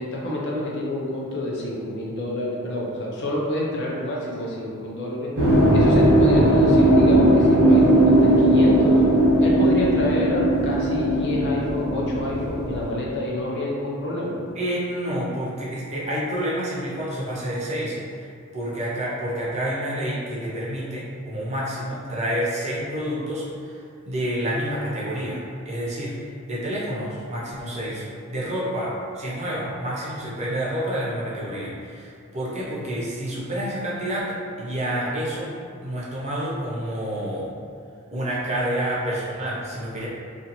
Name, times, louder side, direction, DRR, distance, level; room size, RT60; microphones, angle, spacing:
voice 1, 0.0-5.3 5.7-9.0 9.4-14.4, left 1 dB, 55° left, -4 dB, 0.5 m, -28 dB
sound 1, 5.4-12.9, right 1 dB, 80° right, 0.8 m, -18 dB
voice 2, 14.5-23.8 24.0-26.2 26.5-35.5 35.8-37.5 38.1-40.1, right 1 dB, 30° right, -6 dB, 0.5 m, -29 dB
2.5 x 2.3 x 2.8 m, 2.3 s
head